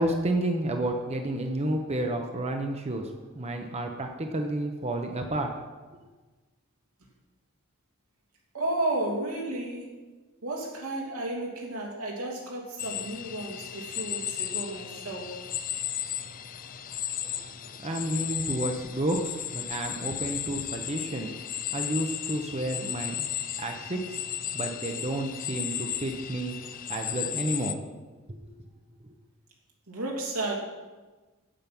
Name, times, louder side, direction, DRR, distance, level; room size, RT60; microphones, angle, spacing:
voice 1, 0.0-5.5 5.9-6.0 17.8-21.3 21.7-23.3 23.6-24.2 24.5-26.5 26.9-27.8 28.3-28.4, right 1 dB, 30° right, 3 dB, 0.8 m, -30 dB
voice 2, 8.5-9.9 10.4-15.4 29.9-30.6, right 2 dB, 90° right, -2 dB, 2.8 m, -32 dB
sound 1, 12.8-27.7, left 10 dB, 40° left, 0.5 m, -35 dB
9.0 x 8.6 x 6.0 m, 1.3 s
head